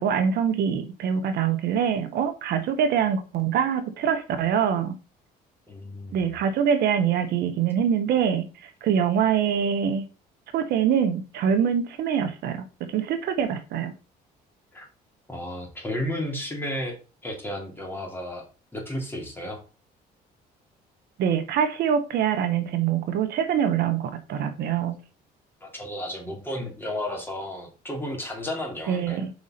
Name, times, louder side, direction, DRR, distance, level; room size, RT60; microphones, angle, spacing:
voice 1, 0.0-4.9 6.1-10.0 10.5-13.9 21.2-24.9 28.9-29.3, right 8 dB, 70° right, 8 dB, 1.2 m, -24 dB
voice 2, 5.7-6.2 14.7-14.9 15.3-17.0 17.2-18.4 18.7-19.6 25.6-29.3, left 1 dB, 10° left, 0 dB, 2.9 m, -33 dB
5.3 x 4.7 x 5.7 m, 0.32 s
cardioid pair, 110°, 17 cm